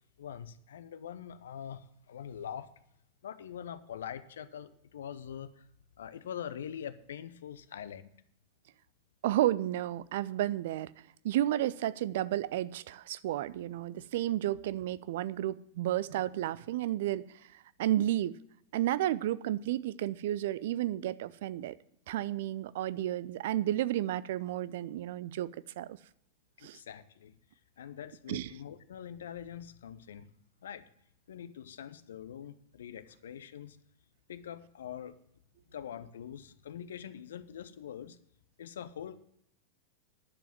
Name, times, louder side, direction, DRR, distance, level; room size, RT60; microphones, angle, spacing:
voice 1, 0.2-2.7 3.2-5.7 6.0-8.1 26.6-27.4 27.8-30.3 30.6-30.9 31.3-33.8 34.3-35.2 35.7-38.2 38.6-39.2, left 9 dB, 65° left, 0.7 m, -44 dB
voice 2, 9.2-10.9 11.2-17.2 17.8-18.4 18.7-21.8 22.1-25.5 25.8-26.0 26.6-26.8 28.3-28.5, right 13 dB, 55° right, 0.4 m, -32 dB
11.0 x 7.0 x 7.3 m
figure-of-eight pair, 90°, 0 cm